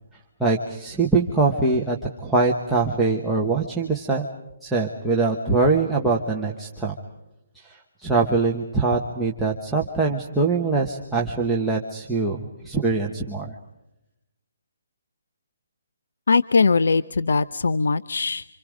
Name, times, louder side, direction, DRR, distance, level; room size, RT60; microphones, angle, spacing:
voice 1, 0.4-4.3 4.6-6.9 7.5-13.5, right 3 dB, ahead, -5 dB, 1.2 m, -23 dB
voice 2, 16.3-18.5, left 4 dB, 65° left, 14 dB, 0.8 m, -20 dB
29.0 x 27.0 x 5.1 m, 0.91 s
hypercardioid pair, 180°, 0 cm